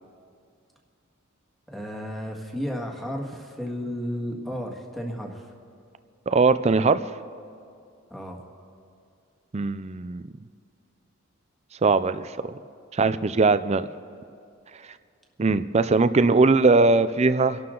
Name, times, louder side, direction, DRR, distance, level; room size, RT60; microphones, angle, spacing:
voice 1, 1.7-5.5 8.1-8.4, equal, ahead, 0 dB, 1.8 m, -33 dB
voice 2, 6.3-7.0 9.5-10.2 11.8-12.3 12.9-13.9 15.4-17.6, right 3 dB, 30° right, 12 dB, 0.5 m, -20 dB
30.0 x 11.5 x 3.9 m, 2.4 s
head